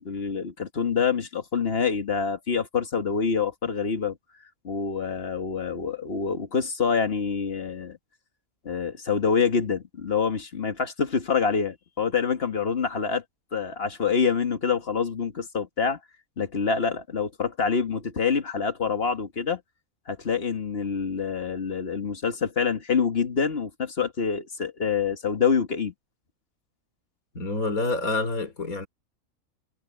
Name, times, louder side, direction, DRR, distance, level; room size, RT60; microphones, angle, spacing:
voice 1, 0.0-4.2 4.6-8.0 8.7-13.2 13.5-16.0 16.4-19.6 20.1-25.9, left 6 dB, 45° left, 1.9 m, -26 dB
voice 2, 27.3-28.9, left 2 dB, 80° left, 4.2 m, -27 dB
omnidirectional pair, 1.5 m